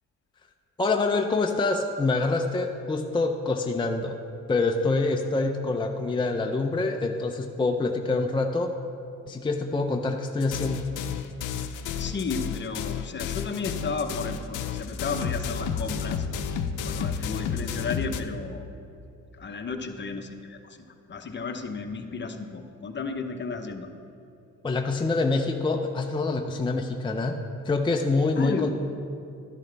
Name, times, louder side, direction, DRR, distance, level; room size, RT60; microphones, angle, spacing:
voice 1, 0.8-4.2 4.5-8.7 9.3-10.9 24.6-27.4 27.6-28.7, left 3 dB, 15° left, 3 dB, 0.6 m, -26 dB
sound 1, 10.4-18.2, left 7 dB, 90° left, 0.7 m, -31 dB
voice 2, 12.0-16.3 16.8-18.7 19.3-20.8 21.1-23.9 28.4-28.7, left 4 dB, 35° left, 6 dB, 0.9 m, -33 dB
12.0 x 11.0 x 3.4 m, 2.6 s
cardioid pair, 90°, 30 cm